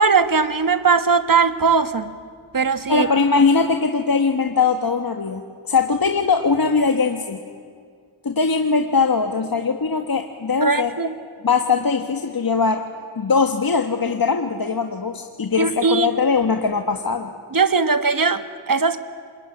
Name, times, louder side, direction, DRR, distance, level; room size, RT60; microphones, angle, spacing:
voice 1, 0.0-2.1 2.5-3.1 10.6-11.1 15.6-16.1 17.5-19.0, right 5 dB, 45° right, 10 dB, 1.5 m, -19 dB
voice 2, 2.9-7.4 8.2-10.9 11.4-12.8 13.1-17.3, left 4 dB, 45° left, 5 dB, 1.4 m, -20 dB
26.0 x 21.5 x 9.9 m, 2.1 s
cardioid pair, 55°, 48 cm